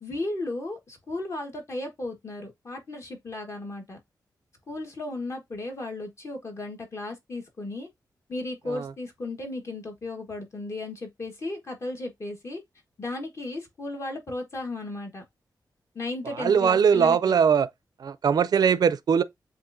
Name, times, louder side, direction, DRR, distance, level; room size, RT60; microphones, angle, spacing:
voice 1, 0.0-4.0 4.7-7.9 8.3-12.6 13.0-15.2 15.9-17.4, left 2 dB, 40° left, 1.4 m, -35 dB
voice 2, 16.4-17.7 18.0-19.2, right 7 dB, 60° right, 0.4 m, -21 dB
7.4 x 2.6 x 2.6 m
wide cardioid pair, 115°, 8 cm